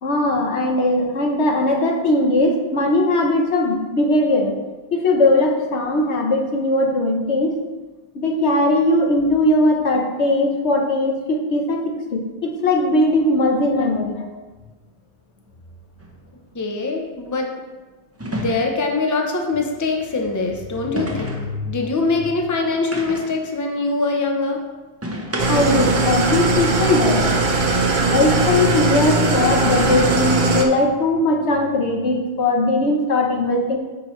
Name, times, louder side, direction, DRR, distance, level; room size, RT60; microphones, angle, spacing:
voice 1, 0.0-4.6 4.9-7.6 8.1-14.2 21.3-21.7 25.5-27.2 28.0-33.8, left 1 dB, 80° left, 2 dB, 1.2 m, -19 dB
sound 1, 16.0-16.1 18.2-18.9 21.0-21.5 22.9-23.4 25.0-25.8, right 1 dB, 15° right, 0.7 m, -30 dB
voice 2, 16.5-17.5 18.3-21.4 21.6-24.6, left 3 dB, 20° left, 2 dB, 0.7 m, -23 dB
Engine starting / Idling, 25.4-30.7, right 2 dB, 50° right, 0.8 m, -19 dB
9.6 x 4.6 x 3.2 m, 1.2 s
omnidirectional pair, 1.1 m